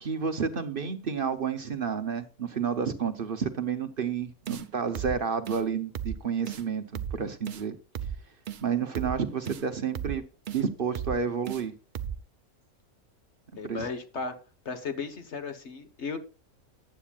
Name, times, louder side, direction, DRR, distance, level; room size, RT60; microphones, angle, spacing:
voice 1, 0.0-7.7 8.6-10.2 10.5-11.7 13.6-13.9, right 6 dB, 45° right, 0.9 m, -30 dB
sound 1, 4.5-4.7 5.0-5.2 5.5-5.6 6.0-6.2 6.5-6.6 7.0-7.2 7.5-7.6 8.0-8.2 8.5-8.6 9.0-9.2 9.5-9.6 10.0-10.2 10.5-10.6 11.0-11.2 11.5-11.6 12.0-12.2, right 9 dB, 65° right, 0.4 m, -35 dB
voice 2, 13.6-14.3 14.6-16.2, left 4 dB, 50° left, 1.4 m, -35 dB
14.5 x 10.0 x 2.4 m
omnidirectional pair, 1.5 m